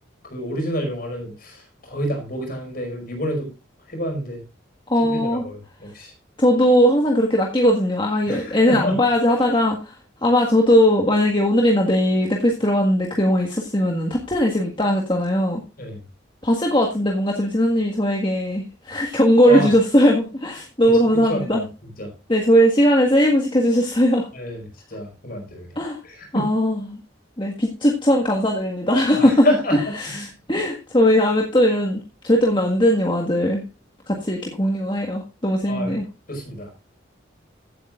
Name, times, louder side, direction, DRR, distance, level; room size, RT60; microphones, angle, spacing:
voice 1, 0.2-3.5 3.9-4.4 5.1-6.1 8.3-8.9 15.8-16.0 19.4-19.7 20.8-20.9 21.3-21.6 22.0-22.1 24.3-25.7 26.0-26.5 29.1-29.8 30.1-30.3 35.7-35.9 36.3-36.7, equal, 45° left, 3 dB, 5.1 m, -28 dB
voice 2, 4.9-5.4 6.4-10.0 10.2-15.6 16.4-21.7 22.3-24.3 25.7-26.0 26.3-27.0 27.4-29.5 29.7-33.6 34.1-36.1, equal, 25° left, 0 dB, 1.7 m, -19 dB
15.5 x 8.8 x 2.5 m, 0.29 s
head